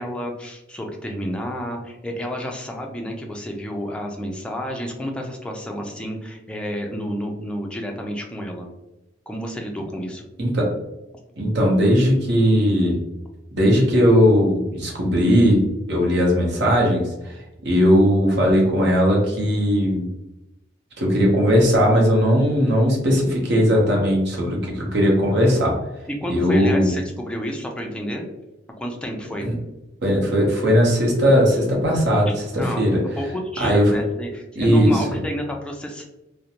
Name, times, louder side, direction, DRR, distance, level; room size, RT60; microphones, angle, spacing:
voice 1, 0.0-8.7 9.3-10.2 26.2-28.3 28.8-29.5 32.3-32.8 33.2-36.1, equal, 5° left, 1 dB, 0.3 m, -30 dB
voice 2, 11.4-13.0 13.5-15.6 15.9-20.0 21.0-25.7 26.3-26.9 29.4-29.5 30.0-33.0 33.6-33.9 34.6-35.0, equal, 60° right, -2 dB, 0.8 m, -18 dB
2.5 x 2.1 x 2.8 m, 0.95 s
head